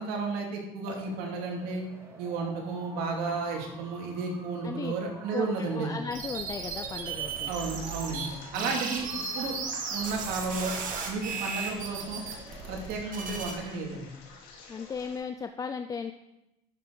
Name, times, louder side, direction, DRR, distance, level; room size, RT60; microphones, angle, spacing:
voice 1, 0.0-1.8 2.2-6.0 7.5-8.3 8.5-9.0 9.3-9.5 9.9-10.7 11.1-12.2 12.7-14.1, right 4 dB, 70° right, 0 dB, 2.5 m, -33 dB
sound 1, 0.8-12.9, right 2 dB, 15° right, 2.2 m, -48 dB
voice 2, 5.3-7.5 8.5-8.8 14.7-16.1, left 5 dB, 20° left, 8 dB, 0.4 m, -36 dB
sound 2, 6.1-8.3 8.5-13.5, right 5 dB, 55° right, 2.0 m, -35 dB
sound 3, 7.3-15.2, left 4 dB, 75° left, 2.4 m, -50 dB
10.5 x 6.6 x 4.0 m, 0.92 s
supercardioid pair, 110°, 16 cm